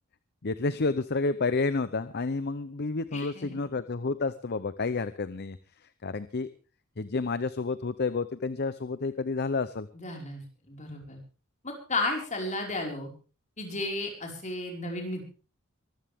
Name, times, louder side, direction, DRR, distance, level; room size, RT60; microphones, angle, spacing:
voice 1, 0.4-5.6 6.0-6.5 7.0-9.9, left 3 dB, 50° left, 14 dB, 0.7 m, -30 dB
voice 2, 3.1-3.6 9.9-11.2 11.6-13.1 13.6-15.2, left 2 dB, 35° left, 1 dB, 5.2 m, -33 dB
23.0 x 14.5 x 3.6 m, 0.36 s
head